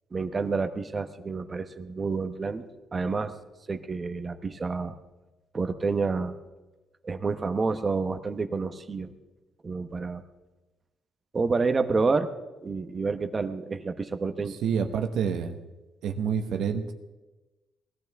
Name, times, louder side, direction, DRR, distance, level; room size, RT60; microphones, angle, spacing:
voice 1, 0.1-2.7 2.9-3.3 3.7-4.9 5.5-6.4 7.0-9.1 9.6-10.2 11.3-12.3 12.6-14.6, right 4 dB, 35° right, 9 dB, 1.0 m, -29 dB
voice 2, 14.4-15.6 16.0-16.9, right 7 dB, 75° right, 6 dB, 1.2 m, -28 dB
19.5 x 12.5 x 3.5 m, 1.1 s
cardioid pair, 90°, 0 cm